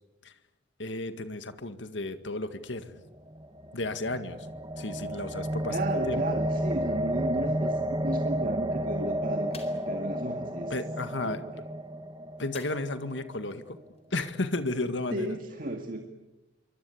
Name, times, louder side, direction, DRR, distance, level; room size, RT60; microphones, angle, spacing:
voice 1, 0.8-2.9 3.7-4.5 4.8-5.8 6.1-6.4 10.7-11.4 12.4-13.8 14.1-15.3, left 2 dB, 85° left, 10 dB, 2.0 m, -33 dB
sound 1, 3.2-13.4, right 1 dB, 25° right, 1.5 m, -32 dB
voice 2, 5.7-9.6 9.9-10.7 11.2-11.4 15.1-16.0, right 1 dB, 50° right, 4 dB, 2.1 m, -34 dB
sound 2, 9.5-9.9 12.5-13.1 13.5-13.6 14.0-14.1, left 5 dB, 35° left, 4.2 m, -48 dB
27.5 x 24.0 x 8.7 m, 1.0 s
head